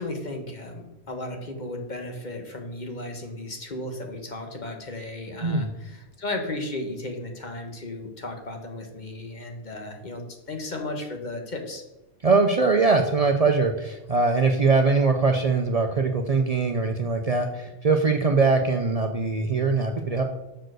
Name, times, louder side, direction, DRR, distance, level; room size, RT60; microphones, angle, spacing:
voice 1, 0.0-11.8, left 2 dB, 45° left, 3 dB, 1.2 m, -35 dB
voice 2, 12.2-20.2, right 4 dB, 45° right, 4 dB, 0.6 m, -22 dB
6.4 x 4.6 x 6.2 m, 0.97 s
omnidirectional pair, 1.1 m